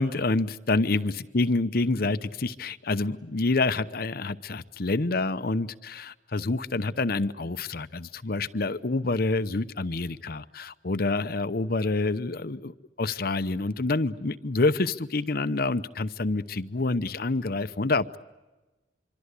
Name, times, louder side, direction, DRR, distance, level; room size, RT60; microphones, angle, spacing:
voice 1, 0.0-18.2, left 3 dB, 55° left, 13 dB, 0.8 m, -27 dB
25.5 x 25.5 x 8.3 m, 1.1 s
head